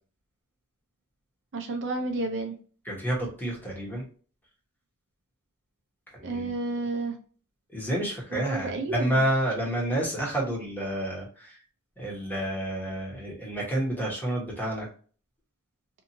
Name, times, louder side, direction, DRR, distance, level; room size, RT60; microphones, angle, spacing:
voice 1, 1.5-2.6 6.2-7.2 8.3-9.2, right 2 dB, 55° right, 4 dB, 0.5 m, -31 dB
voice 2, 2.8-4.0 6.2-6.5 7.7-11.6 12.0-14.9, right 1 dB, 10° left, -3 dB, 1.1 m, -29 dB
2.7 x 2.6 x 2.7 m, 0.41 s
head